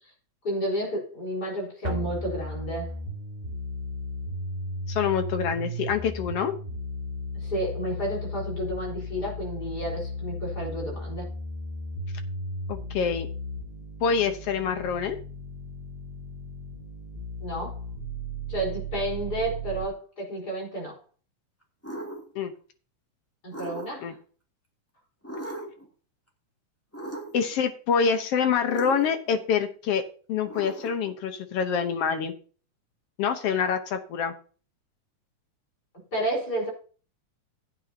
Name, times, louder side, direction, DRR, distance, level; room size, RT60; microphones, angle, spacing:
voice 1, 0.4-2.9 7.3-11.3 17.4-17.8 18.5-21.0 23.4-24.2 35.9-36.7, right 1 dB, 30° left, -2 dB, 4.5 m, -31 dB
sound 1, 1.8-19.8, equal, 15° right, 1.8 m, -35 dB
voice 2, 4.9-6.5 12.7-13.3 14.0-15.2 22.3-22.5 24.0-24.1 27.3-30.0 30.3-32.3 33.2-34.3, left 7 dB, 65° left, 8 dB, 1.6 m, -26 dB
sound 2, 21.8-22.3 23.5-24.2 25.2-25.9 26.9-27.6 28.7-29.4 30.5-31.1, right 1 dB, 5° left, 1.4 m, -38 dB
14.5 x 8.9 x 2.7 m, 0.39 s
omnidirectional pair, 3.5 m